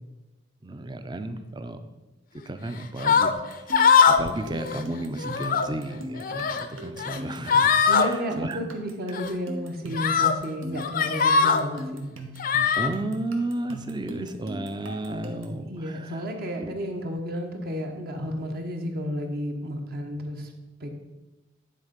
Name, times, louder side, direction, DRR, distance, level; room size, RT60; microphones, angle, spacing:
voice 1, 0.6-1.8 2.5-8.6 12.7-16.2 16.6-16.7, right 2 dB, 20° right, 9 dB, 0.5 m, -33 dB
sound 1, 3.0-3.3 3.7-4.3 4.6-4.8 5.2-5.7 6.2-6.7 7.0-7.2 7.5-8.1 9.1-9.3 9.9-10.3 10.8-11.6 12.4-12.9, left 6 dB, 45° left, 0.5 m, -21 dB
sound 2, 3.3-15.6, equal, 85° right, 1.1 m, -40 dB
voice 2, 7.9-12.1 15.6-20.5 20.8-20.9, equal, 50° right, 3 dB, 0.9 m, -32 dB
9.8 x 3.9 x 5.1 m, 1.1 s
head